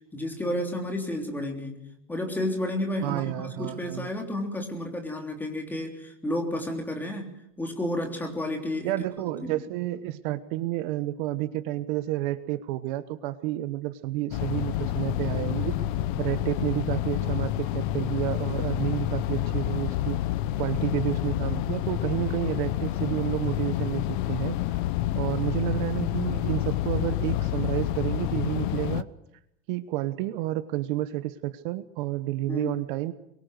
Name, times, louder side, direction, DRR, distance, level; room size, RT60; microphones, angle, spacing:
voice 1, 0.1-1.8 2.1-7.3 7.6-8.9 9.4-9.5 32.5-32.7, left 1 dB, 5° left, 2 dB, 3.3 m, -31 dB
voice 2, 3.0-4.1 8.8-15.7 16.2-20.2 20.6-24.8 25.2-29.1 29.7-33.1, right 15 dB, 55° right, 12 dB, 1.2 m, -30 dB
sound 1, 14.3-29.0, left 13 dB, 55° left, 0.9 m, -28 dB
24.5 x 22.5 x 6.5 m, 0.78 s
supercardioid pair, 170°, 30 cm